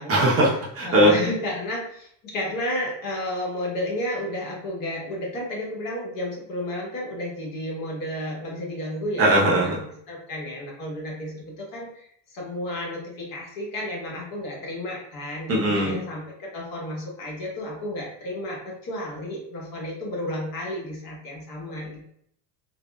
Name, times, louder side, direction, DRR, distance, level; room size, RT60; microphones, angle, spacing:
voice 1, 0.1-1.1 9.2-9.8 15.5-16.0, right 1 dB, 30° right, -3 dB, 0.8 m, -19 dB
voice 2, 0.8-22.1, left 1 dB, 50° left, -2 dB, 1.2 m, -32 dB
4.0 x 2.0 x 2.2 m, 0.68 s
cardioid pair, 120°, 44 cm